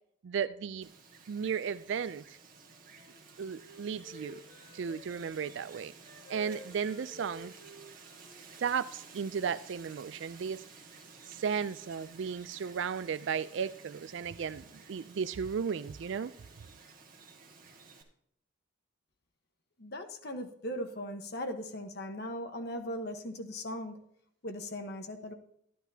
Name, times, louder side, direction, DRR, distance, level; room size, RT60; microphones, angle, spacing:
voice 1, 0.2-0.9 1.3-2.4 3.4-4.4 4.7-5.9 6.3-7.5 8.6-10.6 11.3-16.3, right 6 dB, 60° right, 15 dB, 0.3 m, -35 dB
Wind, 0.8-18.0, right 4 dB, 40° right, 1.7 m, -54 dB
Wind instrument woodwind instrument, 2.4-5.5 6.0-9.2, left 1 dB, 20° left, 3.8 m, -54 dB
voice 2, 19.8-24.0 24.4-25.3, left 1 dB, 50° left, 6 dB, 1.2 m, -39 dB
13.0 x 10.0 x 2.8 m, 0.70 s
head